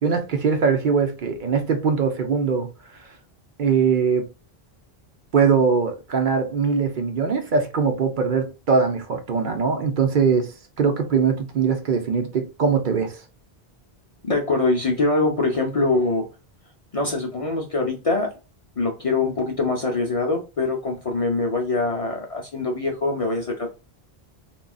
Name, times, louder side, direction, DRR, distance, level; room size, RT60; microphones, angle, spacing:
voice 1, 0.0-2.7 3.6-4.3 5.3-10.5 10.8-13.2, right 5 dB, 55° right, 0.7 m, -21 dB
voice 2, 14.3-16.3 16.9-18.3 18.8-23.7, left 3 dB, 45° left, 0.5 m, -23 dB
3.7 x 2.2 x 2.3 m
omnidirectional pair, 1.1 m